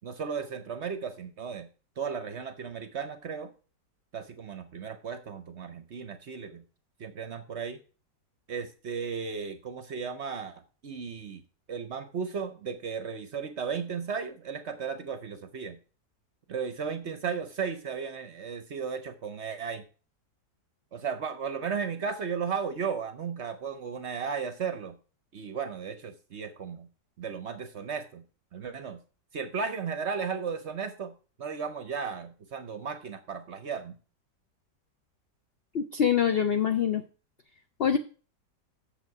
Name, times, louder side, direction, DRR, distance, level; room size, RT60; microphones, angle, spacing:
voice 1, 0.0-1.7 2.0-3.5 4.1-6.6 7.0-7.8 8.5-11.4 11.7-15.8 16.5-19.8 20.9-25.0 25.3-26.9 27.2-28.2 28.5-29.0 29.3-34.0, right 6 dB, 55° right, 9 dB, 0.8 m, -35 dB
voice 2, 35.7-37.0 37.8-38.0, left 8 dB, 70° left, 7 dB, 0.5 m, -24 dB
8.1 x 7.0 x 4.7 m, 0.36 s
omnidirectional pair, 1.8 m